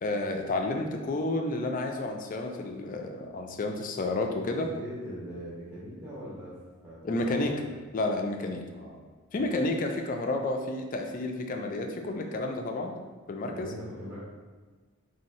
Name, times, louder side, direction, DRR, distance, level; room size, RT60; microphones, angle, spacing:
voice 1, 0.0-4.7 7.0-7.6 7.9-8.6 9.3-13.0 13.3-13.7, left 2 dB, 40° left, 3 dB, 0.4 m, -30 dB
voice 2, 4.4-6.6 6.8-7.6 8.7-9.0 9.3-9.6 13.5-14.2, equal, 20° right, -10 dB, 0.8 m, -42 dB
3.1 x 2.7 x 4.1 m, 1.3 s
head